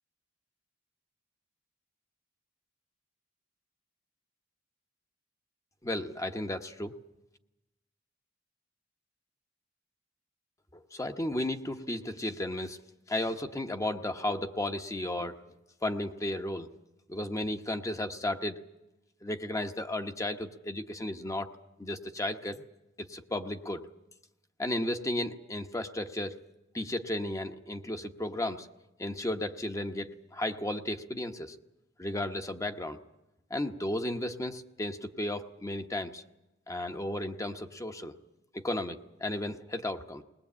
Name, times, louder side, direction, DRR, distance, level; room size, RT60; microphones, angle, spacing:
voice 1, 5.8-7.0 10.7-12.8 13.1-15.4 15.8-16.7 17.1-18.6 19.2-21.5 21.8-22.6 23.0-23.8 24.6-26.4 26.7-28.7 29.0-31.6 32.0-33.0 33.5-36.2 36.7-38.1 38.5-40.2, left 1 dB, 15° left, 7 dB, 1.0 m, -34 dB
20.5 x 19.5 x 8.6 m, 0.97 s
head